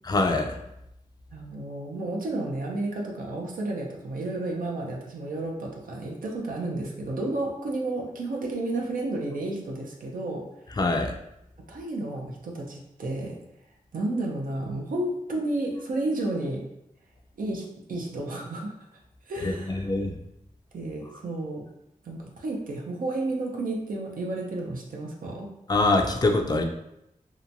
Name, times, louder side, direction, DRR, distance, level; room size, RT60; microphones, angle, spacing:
voice 1, 0.0-0.6 10.8-11.1 19.4-20.1 25.7-26.6, left 2 dB, 30° left, 3 dB, 0.4 m, -24 dB
voice 2, 1.3-10.5 11.7-13.4 13.9-16.6 17.4-17.6 17.9-18.7 19.3-19.9 20.7-21.6 22.0-25.5, right 2 dB, 85° right, -1 dB, 0.5 m, -31 dB
2.8 x 2.2 x 2.6 m, 0.83 s
wide cardioid pair, 70°, 14 cm